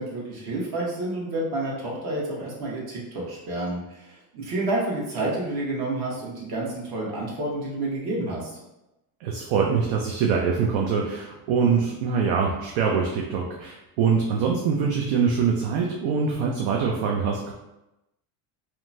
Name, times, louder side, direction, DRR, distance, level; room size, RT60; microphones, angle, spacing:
voice 1, 0.0-8.5, right 2 dB, 50° right, -3 dB, 1.2 m, -29 dB
voice 2, 9.2-17.5, right 6 dB, 65° right, 0 dB, 0.6 m, -24 dB
2.8 x 2.2 x 2.6 m, 0.94 s
supercardioid pair, 100°, 47 cm